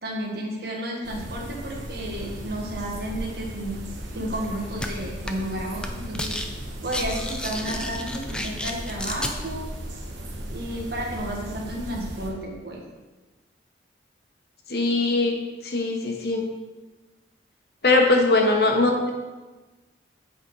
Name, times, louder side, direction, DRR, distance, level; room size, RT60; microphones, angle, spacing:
voice 1, 0.0-3.8 4.1-6.4 6.8-9.7 10.5-12.8 18.3-18.4, right 1 dB, 55° right, -1 dB, 1.4 m, -32 dB
sound 1, 1.0-12.3, equal, 85° right, 1.1 m, -36 dB
sound 2, 4.8-4.9 5.3-5.5 5.8-6.5 6.7-9.3, left 1 dB, 5° left, 0.4 m, -31 dB
voice 2, 14.7-15.3 15.6-16.5 17.8-19.1, left 2 dB, 55° left, 2 dB, 1.0 m, -21 dB
8.0 x 4.1 x 4.7 m, 1.2 s
head